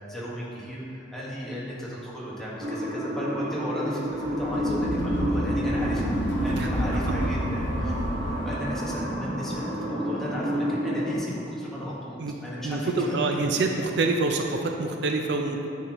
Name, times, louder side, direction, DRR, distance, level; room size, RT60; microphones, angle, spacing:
voice 1, 0.1-6.1 6.4-7.9 8.3-12.2 12.4-13.2, equal, ahead, -7 dB, 1.5 m, -35 dB
sound 1, 2.6-11.1, equal, 90° right, 1.6 m, -30 dB
sound 2, 4.1-8.9, left 1 dB, 85° left, 0.7 m, -30 dB
voice 2, 6.5-7.0 8.2-8.4 12.2-12.3 12.6-15.7, right 3 dB, 65° right, 3 dB, 0.5 m, -27 dB
9.6 x 6.5 x 3.0 m, 2.8 s
head